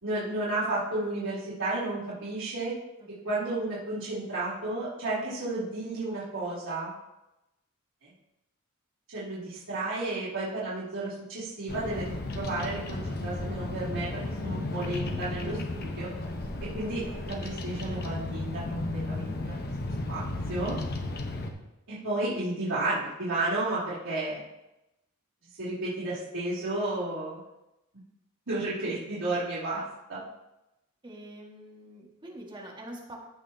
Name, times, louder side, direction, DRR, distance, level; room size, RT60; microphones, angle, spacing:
voice 1, 0.0-2.7 3.2-6.9 8.0-8.1 9.1-16.1 16.6-19.5 20.1-20.8 21.9-24.4 25.6-27.4 28.5-29.8 30.1-30.2, right 2 dB, 85° right, -12 dB, 2.9 m, -32 dB
voice 2, 3.0-3.5 31.0-33.2, right 1 dB, 20° right, -2 dB, 1.8 m, -45 dB
Bird vocalization bird call bird song, 11.7-21.5, left 2 dB, 50° left, 1.0 m, -34 dB
15.5 x 5.8 x 2.8 m, 0.93 s
head